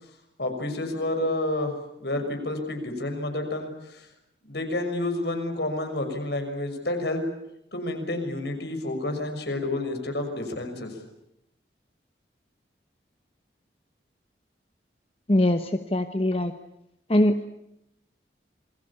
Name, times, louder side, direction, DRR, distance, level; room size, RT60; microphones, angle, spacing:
voice 1, 0.4-4.1 4.5-7.2 7.7-11.0, left 1 dB, 70° left, 5 dB, 6.2 m, -29 dB
voice 2, 15.3-16.5 17.1-17.4, left 1 dB, 30° left, 8 dB, 1.0 m, -22 dB
27.5 x 22.5 x 8.6 m, 0.82 s
head